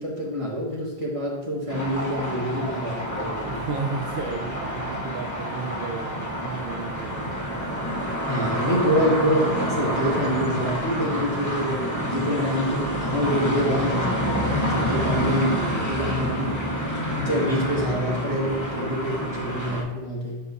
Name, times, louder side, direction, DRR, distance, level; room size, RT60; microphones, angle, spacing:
voice 1, 0.0-3.6 8.3-15.5 15.9-16.6 17.2-20.4, equal, 30° right, -5 dB, 1.9 m, -26 dB
sound 1, 1.7-19.8, equal, 20° left, 1.1 m, -28 dB
voice 2, 3.5-7.6 8.8-9.2 12.2-13.1 15.0-16.2, right 4 dB, 70° right, 1 dB, 0.8 m, -35 dB
8.1 x 5.5 x 2.6 m, 1.1 s
omnidirectional pair, 1.1 m